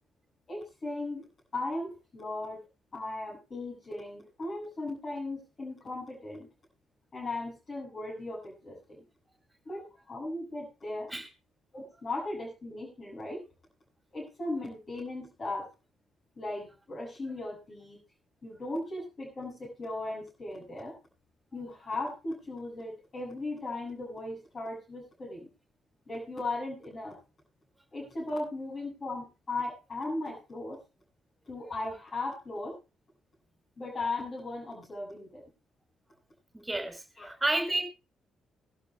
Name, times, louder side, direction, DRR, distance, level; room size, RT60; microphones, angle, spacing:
voice 1, 0.5-1.2 1.5-2.6 2.9-6.5 7.1-9.0 9.6-11.1 11.7-13.4 14.1-15.7 16.4-18.0 18.4-20.9 21.5-25.5 26.1-27.2 27.9-30.8 31.4-32.8 33.8-35.4 37.2-37.4, left 2 dB, 40° left, -4 dB, 7.9 m, -37 dB
voice 2, 36.5-37.8, right 2 dB, 15° right, 6 dB, 5.2 m, -31 dB
23.0 x 12.0 x 2.3 m, 0.29 s
figure-of-eight pair, 40°, 0 cm